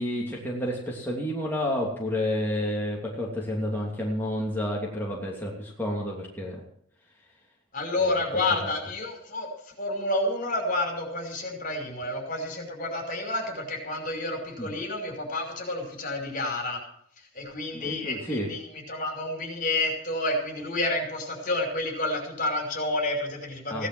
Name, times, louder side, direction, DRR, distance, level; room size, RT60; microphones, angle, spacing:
voice 1, 0.0-6.6 8.0-8.1 8.6-8.7 14.6-14.7 17.7-18.5 23.7-23.9, left 1 dB, 10° left, -4 dB, 2.9 m, -30 dB
voice 2, 7.7-9.5 9.8-16.8 17.3-18.6 18.9-23.9, left 2 dB, 45° left, 3 dB, 5.4 m, -29 dB
17.0 x 11.5 x 6.3 m, 0.65 s
head